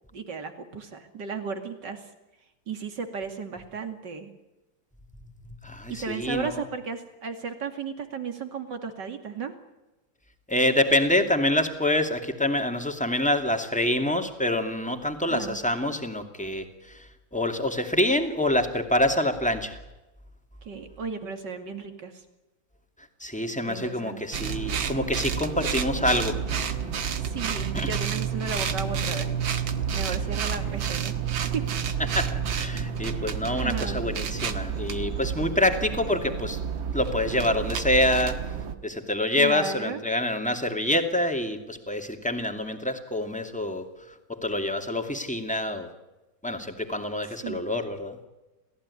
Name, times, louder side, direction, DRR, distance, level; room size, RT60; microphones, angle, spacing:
voice 1, 0.1-2.1 2.7-4.3 5.9-9.5 15.2-15.6 20.6-22.2 23.6-24.2 27.2-29.3 29.9-31.6 33.1-34.0 39.4-40.0 47.4-47.6, right 5 dB, 65° right, 6 dB, 3.0 m, -35 dB
voice 2, 5.6-6.5 10.5-17.1 17.3-19.8 23.2-26.4 27.7-27.9 32.1-36.6 36.9-38.4 38.8-43.9 44.3-45.9 46.4-48.2, left 1 dB, 5° left, 5 dB, 2.4 m, -26 dB
sound 1, 24.3-38.7, right 7 dB, 80° right, 2.3 m, -30 dB
30.0 x 15.0 x 9.9 m, 1.1 s
omnidirectional pair, 2.1 m